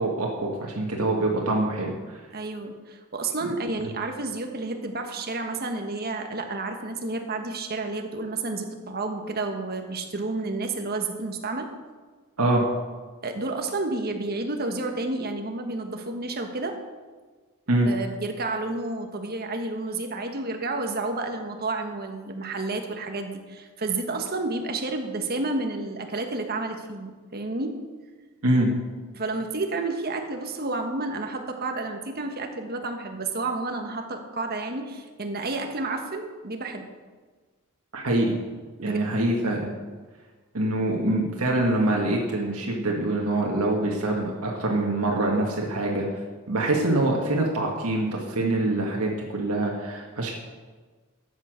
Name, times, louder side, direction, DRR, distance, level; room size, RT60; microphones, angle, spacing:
voice 1, 0.0-2.2 3.4-3.5 3.8-3.9 12.4-12.7 17.7-17.9 28.4-28.7 37.9-38.4 38.8-39.7 40.5-46.1 46.5-50.3, right 2 dB, 85° right, -1 dB, 1.7 m, -25 dB
voice 2, 2.3-11.7 13.2-16.8 17.8-27.8 29.1-36.9 38.8-39.1, right 3 dB, 45° right, 4 dB, 1.4 m, -30 dB
13.0 x 8.4 x 6.4 m, 1.4 s
head